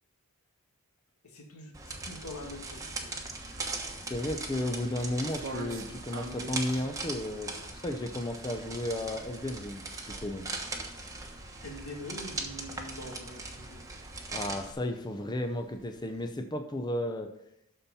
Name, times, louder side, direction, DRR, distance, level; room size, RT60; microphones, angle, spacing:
voice 1, 1.2-3.2 11.6-13.8, left 1 dB, 90° left, 1 dB, 2.0 m, -44 dB
sound 1, 1.7-14.7, right 3 dB, 15° right, 1.1 m, -40 dB
sound 2, 3.4-16.3, right 3 dB, 65° right, 1.2 m, -50 dB
voice 2, 4.0-10.5 14.3-17.3, left 1 dB, 20° left, 6 dB, 0.7 m, -34 dB
12.5 x 4.4 x 5.5 m, 0.79 s
head